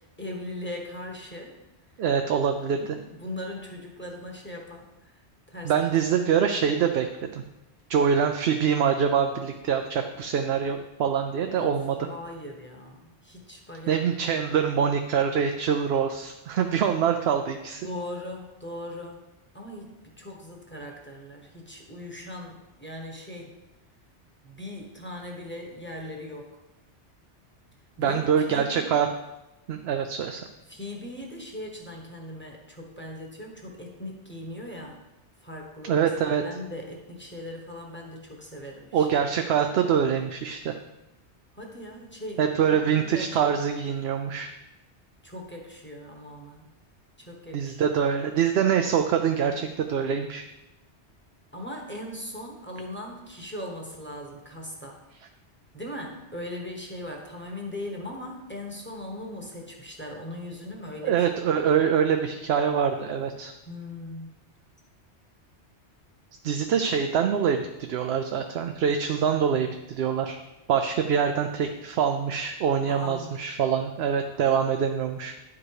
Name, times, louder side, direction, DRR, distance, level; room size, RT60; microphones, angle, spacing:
voice 1, 0.2-1.5 2.8-5.1 5.5-5.7 11.5-14.0 17.8-19.2 19.5-19.9 20.2-23.5 24.4-26.5 28.0-28.9 30.7-35.0 35.4-39.2 41.5-43.5 45.2-46.7 47.2-48.0 51.5-55.0 55.7-61.7 63.7-64.4 72.9-73.3, left 1 dB, 10° left, 0 dB, 1.2 m, -39 dB
voice 2, 2.0-2.8 5.6-7.4 7.9-12.0 13.9-17.9 28.0-29.1 29.7-30.4 35.9-36.4 38.9-40.8 42.4-44.5 47.5-50.4 61.0-63.5 66.4-70.4 70.7-75.3, right 7 dB, 70° right, 6 dB, 0.8 m, -24 dB
10.0 x 4.9 x 4.8 m, 0.98 s
omnidirectional pair, 1.2 m